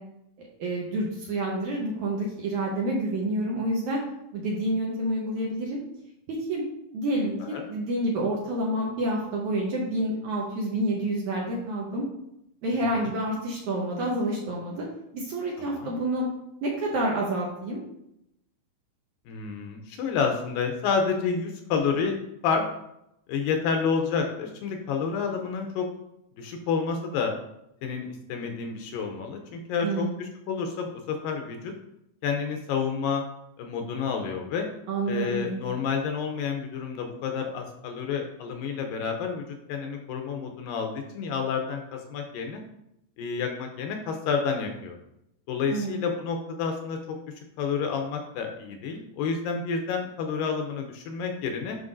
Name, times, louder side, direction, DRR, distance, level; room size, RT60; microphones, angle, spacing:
voice 1, 0.6-4.0 4.3-5.8 6.3-6.6 6.9-12.0 12.6-14.9 15.1-16.2 16.6-17.8 29.8-30.2 34.9-35.6 45.7-45.9, right 1 dB, 70° right, -3 dB, 2.0 m, -28 dB
voice 2, 12.7-13.1 15.8-15.9 19.3-22.2 22.4-22.6 23.3-25.9 26.4-27.3 27.8-31.7 32.2-33.2 33.6-34.7 35.1-39.4 39.7-42.6 43.2-45.0 45.5-47.0 47.6-51.8, left 5 dB, 75° left, 3 dB, 2.2 m, -29 dB
9.4 x 5.4 x 2.6 m, 0.82 s
omnidirectional pair, 4.4 m